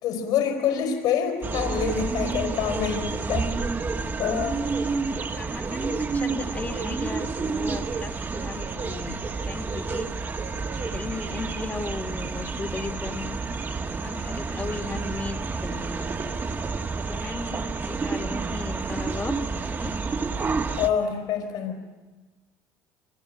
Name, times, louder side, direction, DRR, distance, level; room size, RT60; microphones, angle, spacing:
voice 1, 0.0-3.5 4.2-4.6 20.8-21.8, left 8 dB, 75° left, 2 dB, 4.9 m, -26 dB
sound 1, 1.4-20.9, right 4 dB, 30° right, 1.7 m, -30 dB
voice 2, 5.3-10.1 10.8-13.4 13.9-16.1 17.0-19.9, left 3 dB, 25° left, 5 dB, 1.9 m, -36 dB
29.5 x 25.0 x 7.9 m, 1.3 s
cardioid pair, 105°, 7 cm